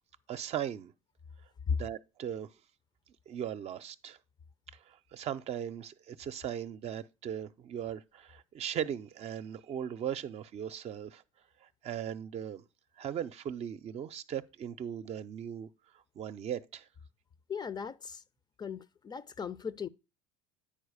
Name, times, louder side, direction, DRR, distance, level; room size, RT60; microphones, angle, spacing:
voice 1, 0.3-0.9 1.7-2.5 3.3-4.2 4.9-11.2 11.8-12.6 13.0-15.7 16.2-16.8, right 9 dB, 40° right, 0.7 m, -38 dB
voice 2, 17.5-18.2 18.6-19.9, left 6 dB, 25° left, 0.6 m, -36 dB
10.0 x 4.7 x 6.5 m
hypercardioid pair, 75°, 16 cm